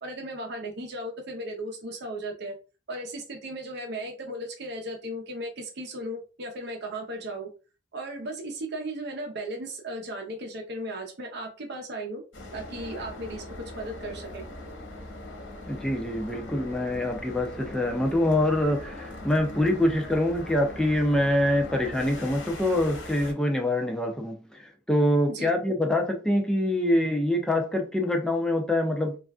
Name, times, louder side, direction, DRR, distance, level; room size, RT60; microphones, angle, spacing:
voice 1, 0.0-2.5 2.9-7.5 7.9-12.2 12.5-14.4 25.3-25.5, right 1 dB, 60° right, 0.7 m, -36 dB
sound 1, 12.3-23.3, left 1 dB, 75° left, 1.1 m, -41 dB
voice 2, 15.7-29.2, left 1 dB, 5° left, 0.4 m, -25 dB
3.3 x 2.5 x 2.3 m
head